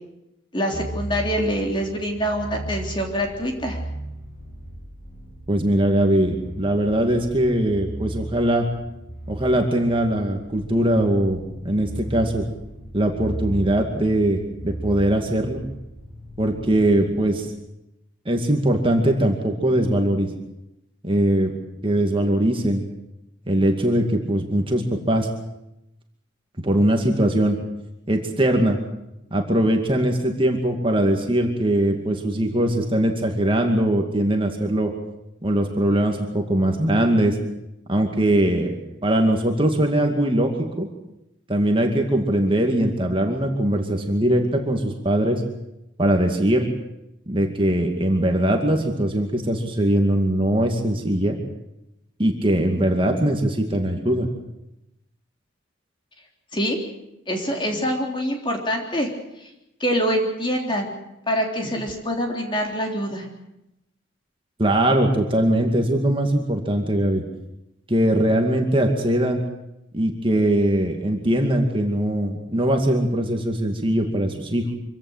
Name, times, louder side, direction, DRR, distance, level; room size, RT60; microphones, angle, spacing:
voice 1, 0.5-3.8 56.5-56.8 57.3-59.1 59.4-59.5 59.8-60.9 61.3-63.3, equal, 25° left, 1 dB, 3.6 m, -25 dB
sound 1, 0.7-17.2, right 1 dB, 45° left, 7.1 m, -36 dB
voice 2, 5.5-8.7 9.3-12.4 12.9-15.6 16.4-17.5 18.3-20.3 21.0-21.5 21.8-22.8 23.5-25.3 26.6-27.6 28.1-28.8 29.3-34.9 35.4-37.4 37.9-40.9 41.5-45.4 46.0-46.7 47.3-51.4 52.2-54.3 64.6-67.2 67.9-69.4 69.9-74.7, right 1 dB, 25° right, 3 dB, 2.3 m, -21 dB
25.0 x 16.0 x 8.1 m, 0.88 s
head